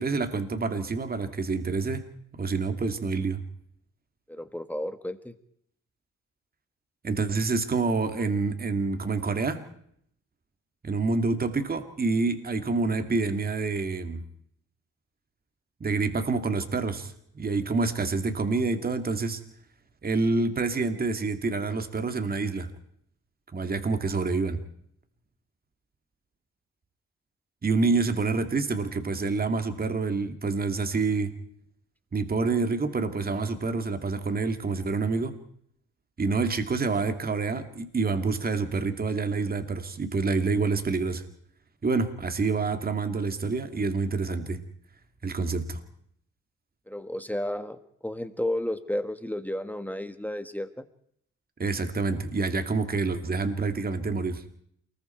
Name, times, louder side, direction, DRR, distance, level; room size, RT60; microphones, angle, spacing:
voice 1, 0.0-2.0 2.3-3.4 7.0-9.6 10.8-14.2 15.8-19.4 20.0-22.7 23.5-24.6 27.6-31.3 32.1-35.4 36.2-41.2 41.8-44.6 45.2-45.8 51.6-54.4, right 4 dB, 30° right, 8 dB, 2.4 m, -27 dB
voice 2, 4.3-5.3 46.9-50.8, left 1 dB, 5° left, 9 dB, 1.6 m, -32 dB
28.5 x 20.5 x 4.6 m, 0.68 s
cardioid pair, 90°, 30 cm